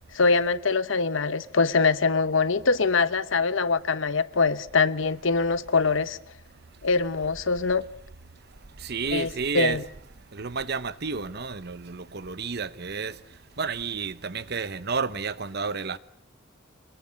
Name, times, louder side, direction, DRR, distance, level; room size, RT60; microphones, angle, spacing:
voice 1, 0.1-6.2 6.8-7.8 9.1-9.3 9.5-9.8, left 4 dB, 70° left, 1.0 m, -23 dB
voice 2, 8.8-9.8 10.3-13.1 13.6-16.0, right 5 dB, 55° right, 1.0 m, -31 dB
26.5 x 21.0 x 8.7 m
head